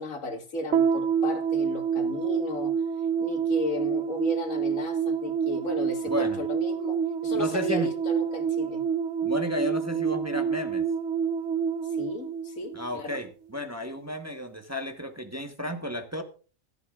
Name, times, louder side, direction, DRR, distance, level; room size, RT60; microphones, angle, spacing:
voice 1, 0.0-2.7 3.2-7.0 7.2-8.8 12.0-13.2, left 1 dB, 85° left, 2.0 m, -34 dB
sound 1, 0.7-13.2, right 7 dB, 60° right, 1.0 m, -28 dB
voice 2, 6.1-6.4 7.3-7.9 9.2-10.9 12.7-16.2, left 1 dB, 15° right, 1.1 m, -33 dB
17.5 x 12.0 x 2.4 m
omnidirectional pair, 1.4 m